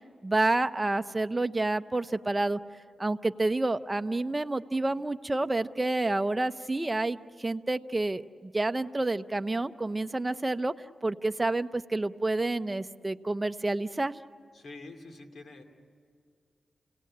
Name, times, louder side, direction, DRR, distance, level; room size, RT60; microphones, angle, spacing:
voice 1, 0.2-2.6 3.0-10.7 11.0-14.2, right 2 dB, 25° right, 9 dB, 0.7 m, -29 dB
voice 2, 14.5-15.6, left 3 dB, 70° left, 4 dB, 2.5 m, -46 dB
29.5 x 17.5 x 8.6 m, 2.1 s
cardioid pair, 60°, 0 cm